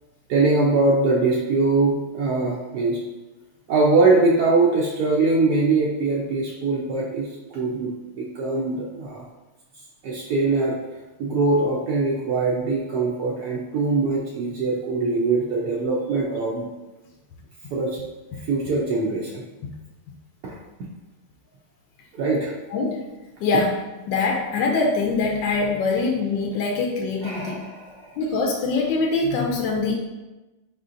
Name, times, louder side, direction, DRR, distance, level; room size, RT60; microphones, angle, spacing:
voice 1, 0.3-3.0 3.7-9.2 10.0-10.8 11.2-16.7 17.7-18.0 18.5-19.4 20.4-20.5 22.2-22.6 27.2-28.1, right 3 dB, 70° right, -5 dB, 0.9 m, -22 dB
voice 2, 22.7-23.0 23.4-27.6 28.2-30.0, left 3 dB, 75° left, 0 dB, 1.1 m, -23 dB
5.0 x 4.1 x 2.5 m, 1.1 s
omnidirectional pair, 2.4 m